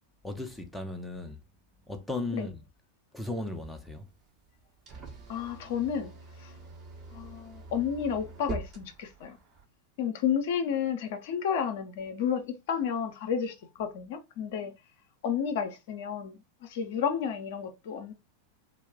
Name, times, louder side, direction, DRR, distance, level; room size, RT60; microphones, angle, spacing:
voice 1, 0.2-1.4 1.9-2.6 3.1-4.1, left 2 dB, 5° left, 0.5 m, -36 dB
sound 1, 3.4-9.6, right 4 dB, 35° right, 0.8 m, -45 dB
voice 2, 5.3-6.1 6.4-6.5 7.1-9.4 10.0-14.7 15.2-18.1, left 7 dB, 50° left, 0.5 m, -31 dB
2.3 x 2.0 x 3.4 m
figure-of-eight pair, 90°, 0 cm